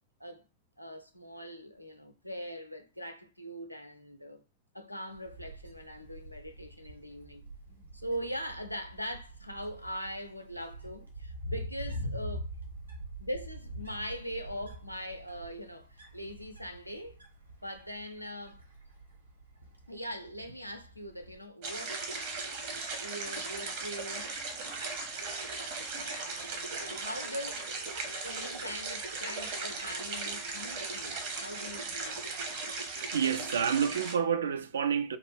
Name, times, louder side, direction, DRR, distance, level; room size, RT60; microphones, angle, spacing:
voice 1, 0.8-4.4 4.7-7.5 7.9-12.5 13.2-17.2 17.6-18.6 19.9-22.0 23.0-24.4 25.9-27.7 28.1-32.2, equal, 90° left, 0.4 m, -41 dB
Wind, 5.1-21.4, equal, 90° right, 0.8 m, -44 dB
sound 1, 21.6-34.1, right 3 dB, 50° right, 0.8 m, -37 dB
voice 2, 33.1-35.2, right 7 dB, 70° right, 0.3 m, -29 dB
2.9 x 2.2 x 3.3 m
figure-of-eight pair, 90°, 0 cm